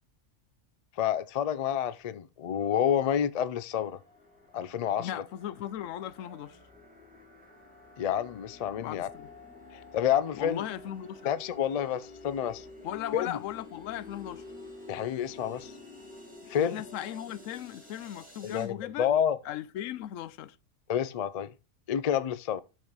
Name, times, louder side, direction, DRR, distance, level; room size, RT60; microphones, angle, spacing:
voice 1, 1.0-4.0 4.5-5.2 8.0-9.1 9.7-10.6 11.2-12.7 13.1-13.4 14.9-15.7 16.5-16.8 18.4-19.4 20.9-21.5 21.9-22.6, left 9 dB, 65° left, 0.3 m, -29 dB
sound 1, 3.7-18.7, left 3 dB, 5° right, 2.3 m, -49 dB
voice 2, 5.0-6.6 8.8-9.3 10.4-11.3 12.8-14.4 16.6-19.1 19.4-20.6, left 12 dB, 85° left, 0.9 m, -37 dB
6.3 x 6.1 x 4.0 m
omnidirectional pair, 1.3 m